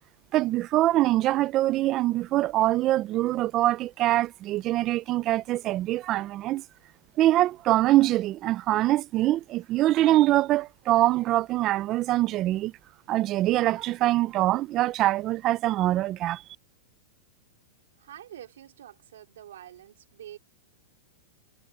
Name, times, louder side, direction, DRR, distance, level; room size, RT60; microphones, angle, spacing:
voice 1, 0.3-6.6 7.2-12.7 13.1-16.4, right 15 dB, 25° right, 0.4 m, -24 dB
voice 2, 18.0-20.4, right 11 dB, 80° right, 3.3 m, -46 dB
supercardioid pair, 165°, 0 cm